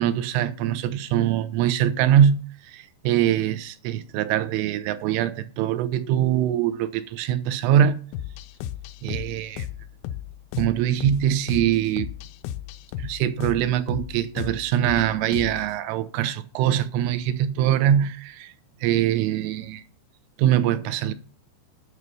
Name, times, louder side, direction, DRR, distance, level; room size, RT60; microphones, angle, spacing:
voice 1, 0.0-8.0 9.0-9.7 10.6-12.1 13.0-18.5 18.8-19.8 20.4-21.1, right 10 dB, 85° right, 3.3 m, -23 dB
sound 1, 8.1-15.7, left 11 dB, 85° left, 3.2 m, -35 dB
9.6 x 6.2 x 6.9 m
omnidirectional pair, 5.6 m